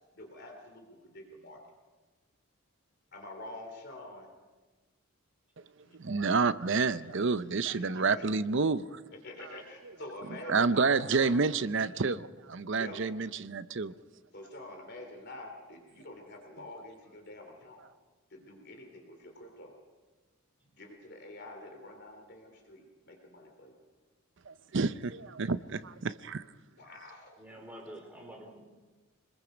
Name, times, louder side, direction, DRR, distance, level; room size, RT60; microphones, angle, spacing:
voice 1, 0.1-1.6 3.1-4.3 5.8-6.0 7.7-8.2 9.2-11.4 12.7-13.0 14.3-17.8 18.3-19.7 20.7-23.8 26.8-27.4, left 1 dB, 50° left, 3 dB, 3.2 m, -47 dB
voice 2, 5.9-9.0 10.5-13.9 24.5-26.4, right 4 dB, 60° right, 14 dB, 0.6 m, -29 dB
voice 3, 27.4-28.6, right 1 dB, 10° right, 1 dB, 3.7 m, -47 dB
25.0 x 21.0 x 5.2 m, 1.3 s
head